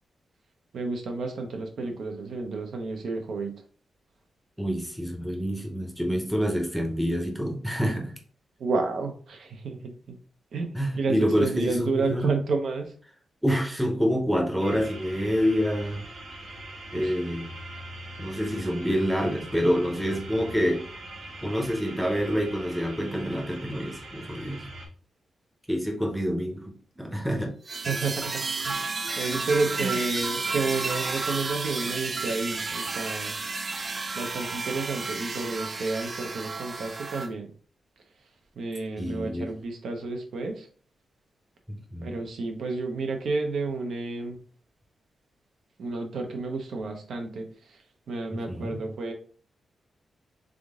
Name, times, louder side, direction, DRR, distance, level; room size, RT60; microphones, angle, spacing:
voice 1, 0.7-3.6 8.6-10.2 10.5-12.9 16.9-17.1 27.9-28.8 29.2-33.3 34.2-37.5 38.6-40.7 42.0-44.4 45.8-47.5 48.1-49.1, right 3 dB, 65° right, 4 dB, 0.8 m, -31 dB
voice 2, 4.6-8.1 10.7-12.3 13.4-16.0 16.9-17.5 18.2-20.9 21.4-24.6 25.7-27.5 29.7-29.9 39.0-39.5 41.7-42.1 48.3-48.8, equal, ahead, 1 dB, 0.8 m, -27 dB
sound 1, 14.6-24.9, right 1 dB, 85° right, 1.9 m, -42 dB
sound 2, 27.7-37.3, right 3 dB, 30° right, 0.4 m, -32 dB
3.7 x 3.6 x 3.7 m, 0.43 s
wide cardioid pair, 165°, 0 cm